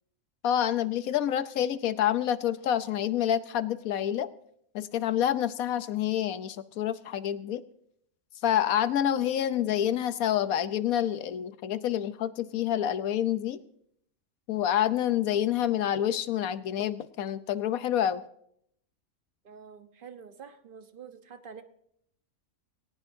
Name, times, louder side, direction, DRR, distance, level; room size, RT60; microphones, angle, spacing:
voice 1, 0.4-4.3 4.7-7.6 8.4-13.6 14.5-18.2, left 10 dB, 75° left, 13 dB, 1.2 m, -28 dB
voice 2, 19.4-21.6, right 6 dB, 40° right, 8 dB, 1.2 m, -47 dB
19.0 x 18.0 x 2.7 m, 0.70 s
omnidirectional pair, 1.5 m